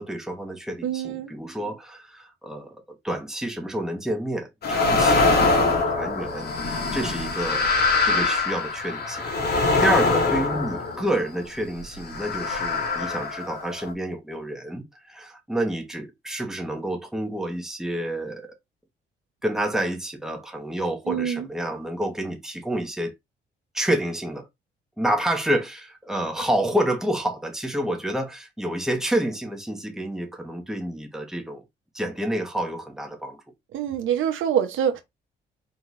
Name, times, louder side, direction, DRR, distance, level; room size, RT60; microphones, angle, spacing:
voice 1, 0.0-7.7 8.0-18.5 19.4-23.1 23.7-24.5 25.0-31.6 31.9-33.4, right 1 dB, ahead, 1.3 m, -29 dB
voice 2, 0.8-1.3 21.1-21.5 33.7-35.0, right 9 dB, 80° right, 1.0 m, -25 dB
sound 1, 4.6-11.4 12.0-13.9, left 3 dB, 55° left, 1.7 m, -23 dB
4.5 x 3.9 x 2.6 m
cardioid pair, 90°, 20 cm